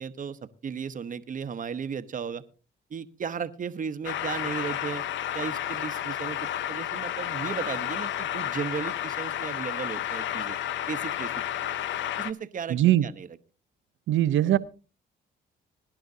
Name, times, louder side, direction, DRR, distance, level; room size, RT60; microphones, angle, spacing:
voice 1, 0.0-2.4 2.9-5.0 5.3-10.6 10.9-11.3 12.2-13.3, right 6 dB, 40° right, 11 dB, 0.9 m, -35 dB
sound 1, 4.0-12.3, left 11 dB, 70° left, 0.6 m, -31 dB
voice 2, 12.7-13.1 14.1-14.6, right 13 dB, 75° right, 15 dB, 0.7 m, -21 dB
21.0 x 10.5 x 2.7 m, 0.34 s
cardioid pair, 90°, 20 cm